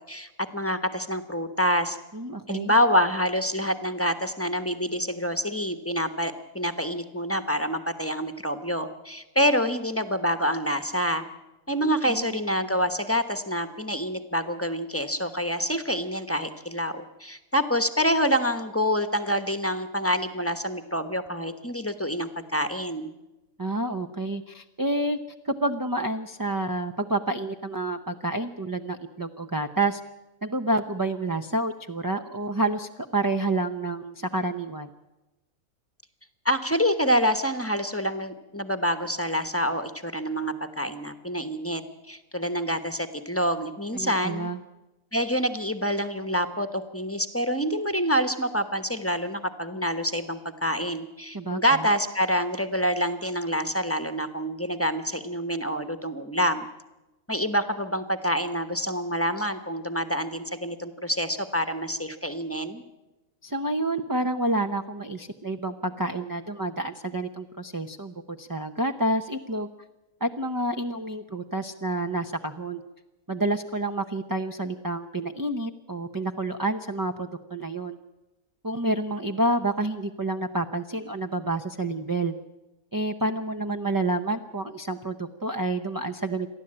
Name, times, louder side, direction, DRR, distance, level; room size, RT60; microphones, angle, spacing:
voice 1, 0.1-2.0 2.5-11.2 11.7-23.1 36.4-41.8 42.1-44.5 45.1-56.7 57.3-62.8, equal, 10° left, 9 dB, 1.0 m, -27 dB
voice 2, 2.1-2.7 12.1-12.4 23.6-25.2 25.4-30.0 30.4-34.9 43.9-44.6 51.3-51.8 63.4-69.7 70.2-72.8 73.3-78.0 78.6-82.3 82.9-86.5, right 2 dB, 20° right, 5 dB, 0.5 m, -29 dB
28.5 x 11.5 x 8.8 m, 1.0 s
omnidirectional pair, 1.5 m